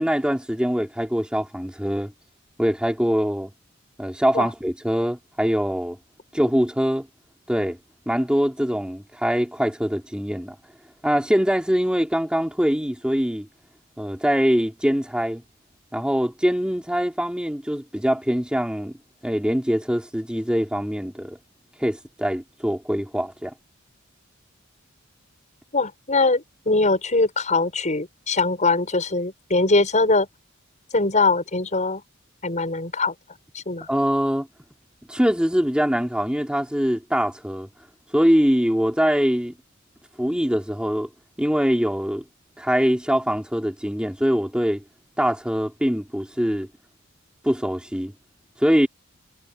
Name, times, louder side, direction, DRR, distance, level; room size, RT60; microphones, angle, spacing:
voice 1, 0.0-2.1 2.6-3.5 4.0-6.0 6.3-7.1 7.5-7.8 8.1-10.5 11.0-13.5 14.0-15.4 15.9-19.0 19.2-21.4 21.8-23.5 33.9-34.5 35.1-37.7 38.1-39.5 40.2-41.1 41.4-42.2 42.6-44.8 45.2-46.7 47.4-48.1 48.6-48.9, equal, 5° right, 3.2 m, -23 dB
voice 2, 25.7-30.3 30.9-32.0 32.4-33.1 33.5-33.9, left 3 dB, 35° left, 6.4 m, -22 dB
head